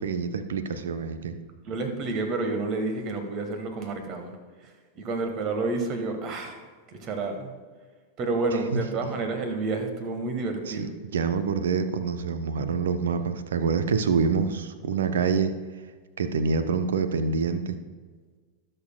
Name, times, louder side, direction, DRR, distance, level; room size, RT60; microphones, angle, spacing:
voice 1, 0.0-1.4 8.7-8.8 10.7-10.9 11.1-15.5 16.2-17.8, right 5 dB, 65° right, 10 dB, 0.7 m, -26 dB
voice 2, 1.6-4.3 4.6-7.5 8.2-10.9, right 3 dB, 35° right, 6 dB, 1.5 m, -30 dB
18.5 x 6.7 x 2.3 m, 1.5 s
figure-of-eight pair, 90°, 0 cm